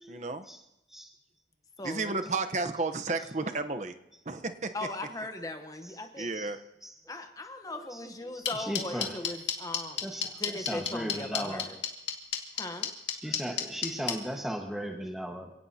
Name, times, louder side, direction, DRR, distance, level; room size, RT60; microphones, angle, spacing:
voice 1, 0.1-0.4 1.8-3.9 4.3-4.7 6.2-6.6, right 3 dB, 40° right, 8 dB, 0.9 m, -32 dB
voice 2, 1.8-2.2 4.7-6.3 7.1-11.8 12.5-12.9, left 2 dB, 20° left, 6 dB, 1.0 m, -39 dB
sound 1, 8.4-14.1, left 9 dB, 80° left, 2.1 m, -29 dB
voice 3, 8.5-9.1 10.0-10.3 10.6-11.6 13.2-15.5, equal, ahead, 2 dB, 1.4 m, -36 dB
27.5 x 17.5 x 2.9 m, 0.88 s
head